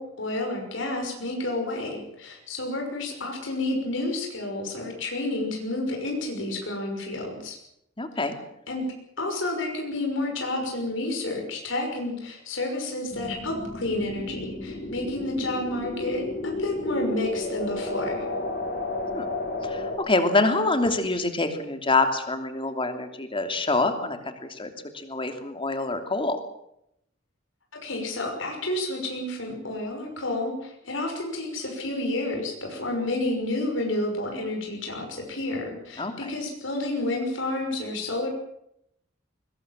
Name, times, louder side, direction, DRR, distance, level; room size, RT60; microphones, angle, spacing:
voice 1, 0.0-7.6 8.7-8.8 9.2-18.3 27.8-38.3, left 2 dB, 80° left, 2 dB, 6.0 m, -30 dB
voice 2, 8.0-8.3 19.1-19.3 19.6-24.7 24.9-26.4 36.0-36.3, left 3 dB, 30° left, 7 dB, 2.9 m, -26 dB
sound 1, 13.1-20.0, left 2 dB, 55° left, 7.3 m, -32 dB
22.5 x 20.5 x 7.6 m, 0.76 s
head